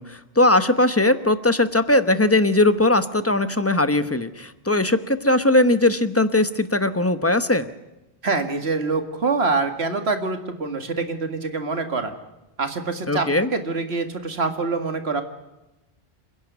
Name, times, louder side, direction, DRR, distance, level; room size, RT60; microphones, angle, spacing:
voice 1, 0.0-7.7 13.1-13.5, left 2 dB, 15° left, 11 dB, 0.9 m, -19 dB
voice 2, 8.2-12.1 12.6-15.2, right 4 dB, 85° right, 7 dB, 2.2 m, -25 dB
28.0 x 10.5 x 9.3 m, 0.99 s
omnidirectional pair, 1.0 m